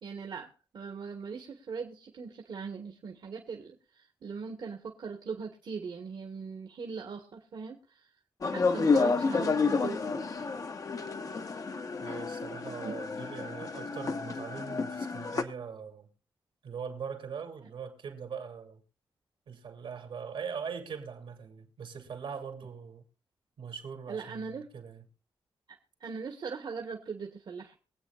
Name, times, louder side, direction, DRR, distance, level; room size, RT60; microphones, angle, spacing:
voice 1, 0.0-8.1 8.5-10.2 12.8-12.9 24.1-24.6 26.0-27.8, right 5 dB, 65° right, 1.5 m, -40 dB
sound 1, 8.4-15.4, left 4 dB, 45° left, 1.0 m, -30 dB
voice 2, 12.0-16.1 16.6-18.8 19.5-23.0 23.6-25.0, right 6 dB, 85° right, 2.8 m, -41 dB
23.0 x 8.3 x 2.4 m
wide cardioid pair, 120°, 9 cm